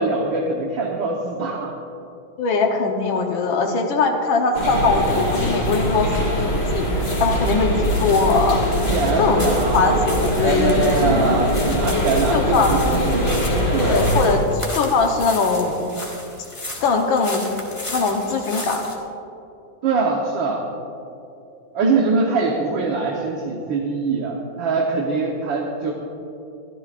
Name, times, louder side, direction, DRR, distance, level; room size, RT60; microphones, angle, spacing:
voice 1, 0.0-1.7 8.9-10.0 10.4-13.5 13.7-14.1 19.8-20.6 21.7-25.9, right 3 dB, 75° right, -1 dB, 1.8 m, -23 dB
voice 2, 2.4-6.1 6.5-8.6 9.2-11.0 11.9-12.7 13.8-15.8 16.8-17.5 17.9-18.8, left 4 dB, 85° left, 2 dB, 1.8 m, -21 dB
sound 1, 4.5-14.4, equal, 40° left, 2.7 m, -22 dB
sound 2, 5.9-19.0, left 1 dB, 15° left, 1.6 m, -36 dB
23.0 x 13.5 x 2.5 m, 2.7 s
omnidirectional pair, 2.1 m